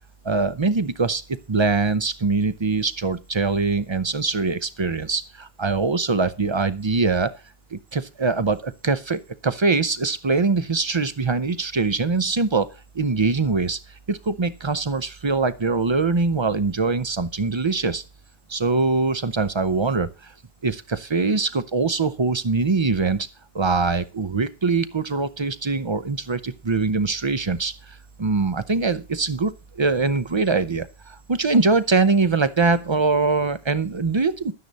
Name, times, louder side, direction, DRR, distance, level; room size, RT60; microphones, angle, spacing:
voice 1, 0.2-1.2 1.5-7.3 7.7-13.8 14.1-18.0 18.5-20.3 20.6-23.3 23.5-27.7 28.2-34.5, right 4 dB, 35° right, 14 dB, 0.4 m, -23 dB
12.0 x 9.6 x 4.1 m, 0.29 s
omnidirectional pair, 1.4 m